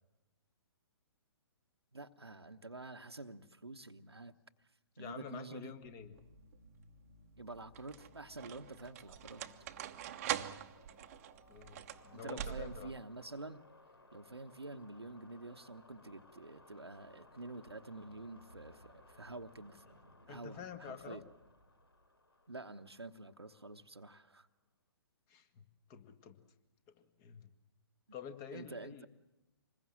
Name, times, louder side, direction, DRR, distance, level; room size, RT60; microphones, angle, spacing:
voice 1, 1.9-4.3 5.0-5.7 7.4-9.4 12.1-13.6 14.1-20.0 20.3-21.2 22.5-24.5 28.5-29.1, right 2 dB, 80° right, 6 dB, 1.1 m, -48 dB
voice 2, 5.0-6.1 11.5-12.9 20.3-21.2 25.3-25.6 25.9-26.4 26.9-27.5 28.1-29.1, left 8 dB, 25° left, 8 dB, 1.9 m, -49 dB
sound 1, 5.8-24.3, left 2 dB, 75° left, 3.6 m, -62 dB
sound 2, 6.2-6.7 7.5-13.0, right 11 dB, 35° right, 1.0 m, -43 dB
26.0 x 21.0 x 7.5 m, 0.98 s
figure-of-eight pair, 125°, 13 cm